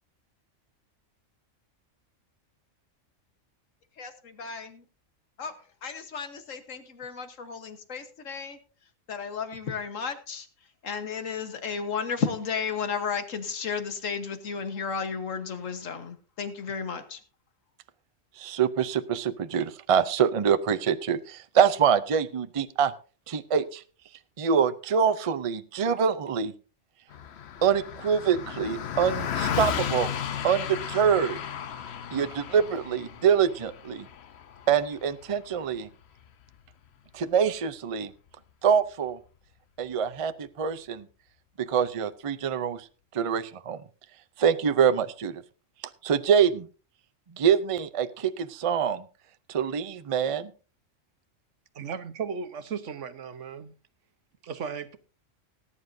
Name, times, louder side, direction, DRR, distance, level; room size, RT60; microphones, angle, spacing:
voice 1, 4.0-4.8 5.4-5.5 5.8-8.6 9.1-10.5 10.8-17.2, left 6 dB, 90° left, 1.6 m, -33 dB
voice 2, 18.4-22.9 23.3-23.8 24.4-26.5 27.6-30.1 30.4-31.4 32.1-34.1 34.7-35.9 37.1-38.1 38.6-39.2 39.8-41.1 41.6-42.8 43.1-43.8 44.4-45.4 46.0-46.7 47.4-49.0 49.5-50.5, right 7 dB, 40° right, 0.5 m, -25 dB
Car passing by, 27.1-36.7, left 8 dB, 60° left, 1.0 m, -34 dB
voice 3, 51.7-53.7 54.4-55.0, right 6 dB, 70° right, 1.3 m, -35 dB
19.0 x 9.9 x 2.7 m
omnidirectional pair, 1.3 m